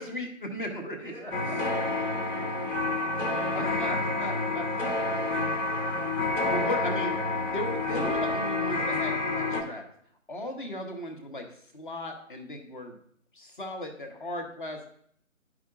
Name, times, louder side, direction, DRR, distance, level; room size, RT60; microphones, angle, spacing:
voice 1, 0.0-1.6 3.5-4.7 6.5-7.2 7.5-9.8 10.3-11.5 11.7-13.0 13.3-14.8, left 1 dB, 40° left, 4 dB, 1.1 m, -36 dB
voice 2, 1.0-4.0 5.0-6.2 6.5-6.7, right 1 dB, ahead, -8 dB, 0.9 m, -49 dB
sound 1, 1.3-9.6, left 2 dB, 70° left, 1.6 m, -29 dB
11.5 x 4.8 x 2.5 m, 0.65 s
figure-of-eight pair, 155°, 40 cm